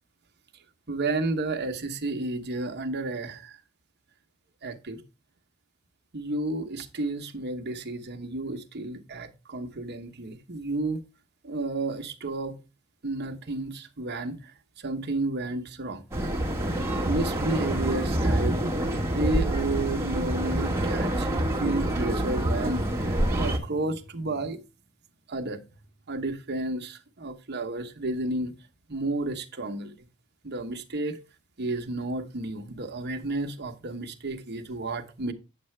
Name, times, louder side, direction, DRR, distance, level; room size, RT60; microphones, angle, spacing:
voice 1, 0.9-3.6 4.6-5.0 6.1-11.0 11.4-12.6 13.0-16.0 17.0-18.6 19.1-24.6 25.3-25.6 26.1-28.5 28.9-29.9 30.4-31.2 31.6-35.3, right 2 dB, 50° right, 1.0 m, -32 dB
sound 1, 16.1-23.6, right 1 dB, 15° right, 1.4 m, -27 dB
9.2 x 7.3 x 3.2 m
head